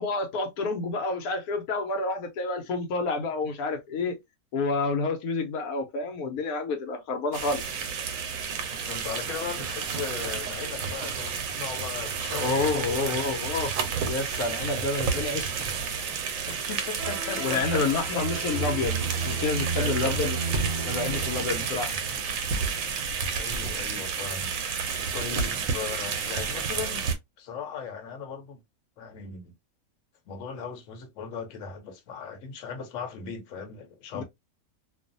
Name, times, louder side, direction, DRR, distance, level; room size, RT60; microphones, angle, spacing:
voice 1, 0.0-4.2 4.5-7.6 12.3-15.5 17.4-20.4 20.8-21.9 34.1-34.2, left 3 dB, 90° left, 1.2 m, -29 dB
sound 1, 7.3-27.2, right 6 dB, 70° right, 1.0 m, -31 dB
voice 2, 8.9-12.6 12.9-13.4 16.5-18.2 19.7-20.2 23.4-24.5 25.1-27.1 27.4-28.6 29.0-29.5 30.3-34.2, left 6 dB, 65° left, 1.0 m, -37 dB
sound 2, 17.0-22.8, right 5 dB, 55° right, 0.6 m, -33 dB
2.5 x 2.4 x 2.5 m
omnidirectional pair, 1.6 m